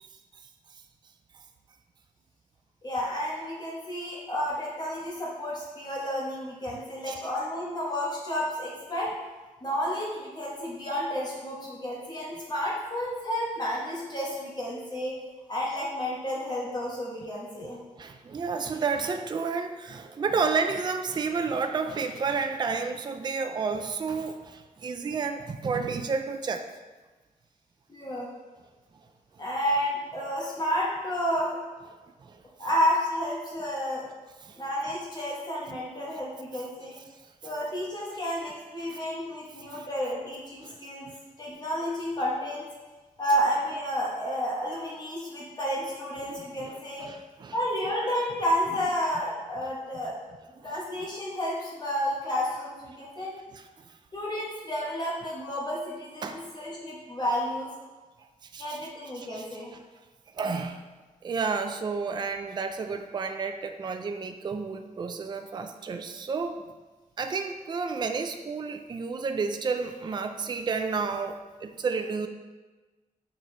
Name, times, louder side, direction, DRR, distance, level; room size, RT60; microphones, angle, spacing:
voice 1, 2.8-9.1 9.6-15.2 15.5-17.8 27.9-28.3 29.4-31.6 32.6-34.1 34.5-37.0 37.4-41.1 41.4-42.7 43.2-47.1 47.5-50.2 50.6-53.3 54.1-57.7 58.6-59.7, equal, 30° left, -5 dB, 1.1 m, -31 dB
voice 2, 18.0-26.6 32.2-32.4 34.4-34.6 38.9-39.0 39.7-39.9 40.6-40.8 41.1-41.2 46.2-46.7 47.0-47.6 56.2-56.4 58.5-58.8 59.2-59.5 60.4-60.8 61.2-66.6 67.2-72.3, right 5 dB, 30° right, 6 dB, 0.3 m, -31 dB
6.4 x 4.5 x 3.2 m, 1.2 s
wide cardioid pair, 160°, 14 cm